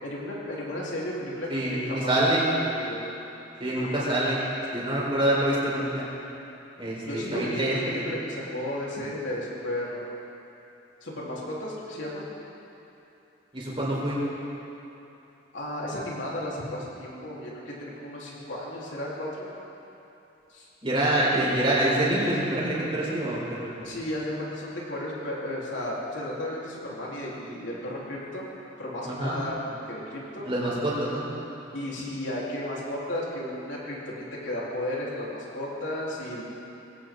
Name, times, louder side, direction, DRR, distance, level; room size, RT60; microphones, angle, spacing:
voice 1, 0.0-2.3 2.7-3.0 3.8-4.1 7.0-10.1 11.0-12.2 15.5-19.5 20.5-20.7 23.8-28.4 28.8-30.5 31.7-36.4, left 1 dB, 70° left, -6 dB, 3.9 m, -34 dB
voice 2, 1.5-2.5 3.6-6.1 6.8-8.0 13.5-14.2 20.8-23.9 29.0-29.3 30.4-31.3, right 1 dB, 25° right, -6 dB, 4.5 m, -26 dB
20.0 x 17.0 x 3.9 m, 2.9 s
head